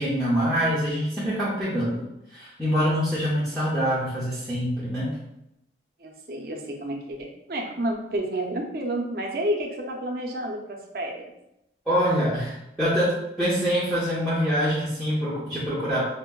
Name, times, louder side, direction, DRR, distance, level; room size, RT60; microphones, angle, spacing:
voice 1, 0.0-2.0 2.3-5.1 11.9-16.1, equal, ahead, -11 dB, 0.5 m, -25 dB
voice 2, 6.0-11.3, right 1 dB, 55° right, 1 dB, 0.5 m, -30 dB
4.4 x 2.0 x 2.2 m, 0.85 s
head